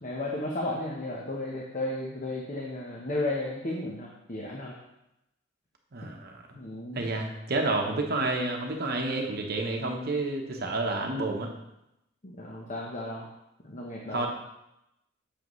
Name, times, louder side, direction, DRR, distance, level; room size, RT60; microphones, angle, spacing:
voice 1, 0.0-4.8 6.5-7.1 12.2-13.3 13.6-14.3, left 2 dB, 40° left, -2 dB, 0.9 m, -34 dB
voice 2, 5.9-6.4 6.9-11.5 14.1-14.3, right 2 dB, 55° right, 2 dB, 0.9 m, -29 dB
7.7 x 6.7 x 3.1 m, 0.86 s
head